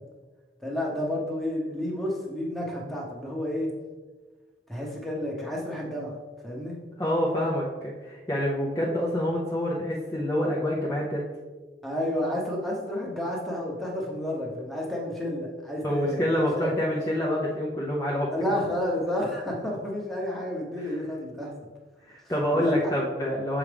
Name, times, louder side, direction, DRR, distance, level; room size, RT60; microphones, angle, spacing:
voice 1, 0.6-3.7 4.7-6.1 6.4-6.8 11.8-16.3 16.6-16.7 18.3-21.5 22.5-22.9, left 1 dB, ahead, -3 dB, 1.0 m, -30 dB
voice 2, 7.0-11.2 15.8-18.3 20.8-21.0 22.1-23.6, equal, 15° left, -5 dB, 0.6 m, -27 dB
7.0 x 4.9 x 3.4 m, 1.4 s
head